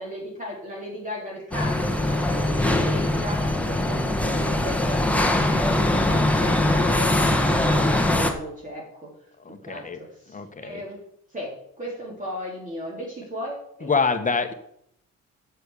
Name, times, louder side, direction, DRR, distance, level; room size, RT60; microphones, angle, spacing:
voice 1, 0.0-9.1 9.7-11.0 11.3-13.9, left 1 dB, 25° right, -4 dB, 3.7 m, -35 dB
sound 1, 1.5-8.3, left 1 dB, 5° left, 1.6 m, -22 dB
voice 2, 9.4-10.0 10.3-10.8 13.8-14.5, left 4 dB, 25° left, 8 dB, 1.4 m, -26 dB
7.7 x 7.1 x 8.3 m, 0.72 s
cardioid pair, 90°, 30 cm